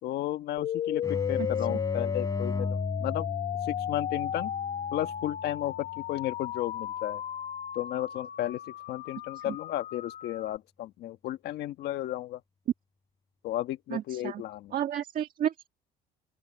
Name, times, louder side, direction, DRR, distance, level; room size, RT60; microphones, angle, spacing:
voice 1, 0.0-3.3 3.6-4.5 4.9-7.2 7.7-8.6 8.9-12.4 13.4-14.7, left 14 dB, 75° left, 1.6 m, -34 dB
sound 1, 0.6-10.6, left 9 dB, 50° left, 1.4 m, -35 dB
sound 2, 1.0-6.5, left 3 dB, 20° left, 3.4 m, -36 dB
voice 2, 13.9-14.4 14.7-15.7, right 10 dB, 55° right, 1.6 m, -32 dB
open air
cardioid pair, 110°, 17 cm